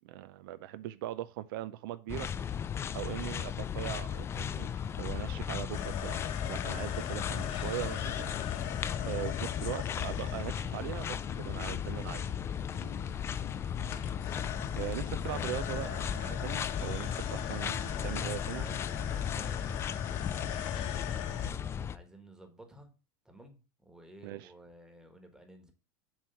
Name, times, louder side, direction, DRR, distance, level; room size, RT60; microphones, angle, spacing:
voice 1, 0.0-2.3 2.9-4.7 5.0-8.3 9.0-12.3 14.8-18.7 24.2-24.5, right 14 dB, 70° right, 0.4 m, -40 dB
sound 1, 2.1-22.0, left 8 dB, 20° left, 0.4 m, -36 dB
sound 2, 5.7-21.5, left 10 dB, 55° left, 1.0 m, -41 dB
voice 2, 15.2-15.6 18.0-19.9 20.1-22.9 23.2-25.7, right 1 dB, 5° right, 1.3 m, -53 dB
7.3 x 3.1 x 5.6 m
supercardioid pair, 130°, 12 cm